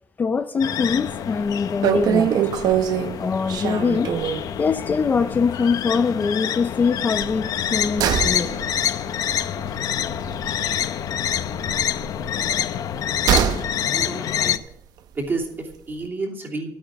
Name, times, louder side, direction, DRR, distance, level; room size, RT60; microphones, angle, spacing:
voice 1, 0.2-2.3 3.1-4.1 4.6-8.5, left 5 dB, 25° left, 9 dB, 0.5 m, -23 dB
sound 1, 0.6-14.6, left 9 dB, 60° left, 0.7 m, -27 dB
sound 2, 0.9-1.2 1.5-1.6 1.8-4.5 4.9-5.1 5.3-5.4 7.1-11.0 11.3-13.7 14.0-14.1, right 9 dB, 75° right, 0.8 m, -24 dB
voice 2, 13.8-14.6 15.1-16.7, right 3 dB, 30° right, -1 dB, 2.9 m, -30 dB
13.0 x 8.7 x 8.0 m, 0.77 s
cardioid pair, 180°, 7 cm